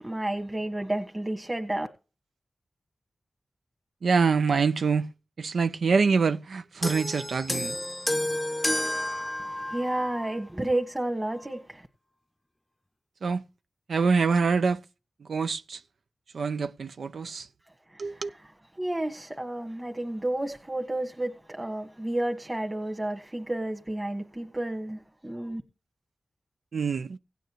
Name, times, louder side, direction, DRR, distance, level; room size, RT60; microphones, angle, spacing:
voice 1, 0.0-1.9 9.4-11.9 17.9-18.4 18.7-25.6, right 1 dB, 20° right, 1.6 m, -31 dB
voice 2, 4.0-5.1 5.4-7.8 13.2-13.4 13.9-14.8 15.3-15.8 16.3-17.5 18.0-18.3 26.7-27.2, right 5 dB, 85° right, 0.4 m, -25 dB
sound 1, 6.8-10.4 11.3-11.5, left 1 dB, 15° left, 0.6 m, -31 dB
17.0 x 9.1 x 3.0 m
cardioid pair, 55°, 0 cm